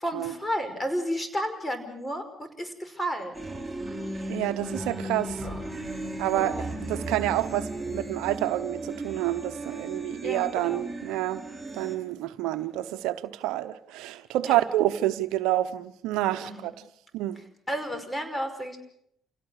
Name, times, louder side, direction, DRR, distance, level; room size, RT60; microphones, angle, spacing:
voice 1, 0.0-3.5 5.4-5.6 6.3-6.8 10.2-10.9 14.5-14.6 16.4-16.7 17.7-18.8, equal, 15° left, 5.3 m, -32 dB
sound 1, 3.3-12.0, right 1 dB, 5° right, 8.0 m, -36 dB
voice 2, 4.3-5.4 6.2-6.5 6.9-11.4 11.7-16.7 17.1-17.4, right 14 dB, 80° right, 0.9 m, -28 dB
28.0 x 17.0 x 6.5 m
hypercardioid pair, 55°, 0 cm